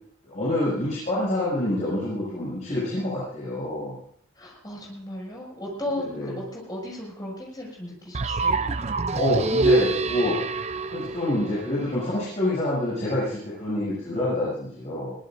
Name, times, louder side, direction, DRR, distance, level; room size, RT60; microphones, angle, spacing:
voice 1, 0.2-4.0 6.0-6.3 9.1-10.4 10.9-15.1, left 1 dB, 35° left, -8 dB, 7.5 m, -27 dB
voice 2, 4.3-8.6, left 1 dB, 20° left, -3 dB, 6.4 m, -35 dB
sound 1, 8.1-12.1, right 3 dB, 30° right, 0.5 m, -25 dB
22.5 x 19.0 x 2.6 m, 0.63 s
head